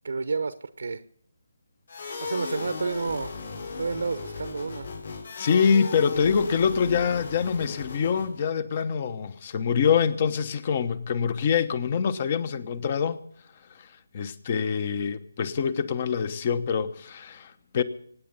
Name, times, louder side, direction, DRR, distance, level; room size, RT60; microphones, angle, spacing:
voice 1, 0.0-1.0 2.2-3.3 3.8-4.9, right 4 dB, 60° right, 0.9 m, -30 dB
sound 1, 1.9-8.4, left 4 dB, 55° left, 4.3 m, -37 dB
voice 2, 5.4-13.2 13.8-17.8, left 6 dB, 35° left, 1.1 m, -25 dB
24.5 x 9.6 x 5.4 m
figure-of-eight pair, 150°, 0 cm